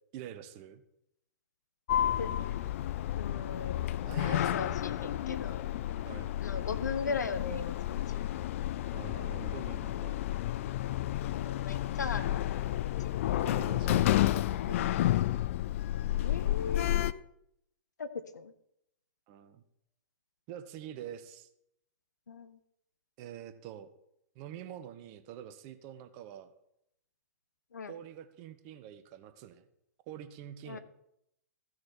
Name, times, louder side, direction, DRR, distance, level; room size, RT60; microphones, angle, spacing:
voice 1, 0.1-0.8 4.0-5.0 6.0-6.4 8.9-10.2 13.3-15.0 19.3-19.6 20.5-21.5 23.2-23.9 24.3-26.5 27.9-29.6 30.1-30.8, right 10 dB, 35° right, 9 dB, 1.0 m, -46 dB
Sliding door, 1.9-17.1, left 13 dB, 45° left, 0.4 m, -31 dB
voice 2, 2.1-2.6 3.2-5.7 6.4-8.0 11.3-13.1 16.2-17.1 18.0-18.5 22.3-22.6 27.7-27.9 30.7-30.8, left 5 dB, 75° left, 11 dB, 0.9 m, -38 dB
15.0 x 6.5 x 4.4 m, 0.78 s
figure-of-eight pair, 115°, 10 cm